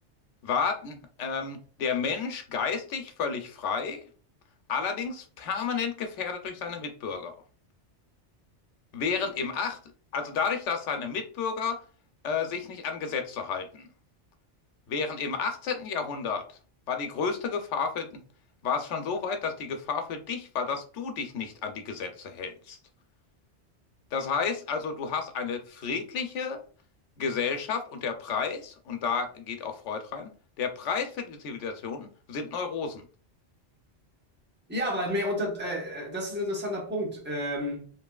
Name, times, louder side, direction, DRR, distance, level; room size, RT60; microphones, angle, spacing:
voice 1, 0.4-4.0 4.7-7.3 8.9-9.8 10.1-11.8 12.2-13.9 14.9-16.5 16.9-18.2 18.6-22.8 24.1-26.6 27.2-30.3 30.6-33.0, left 5 dB, 90° left, 1.0 m, -31 dB
voice 2, 34.7-37.9, equal, 10° right, 0.9 m, -31 dB
3.1 x 2.6 x 2.3 m
omnidirectional pair, 1.2 m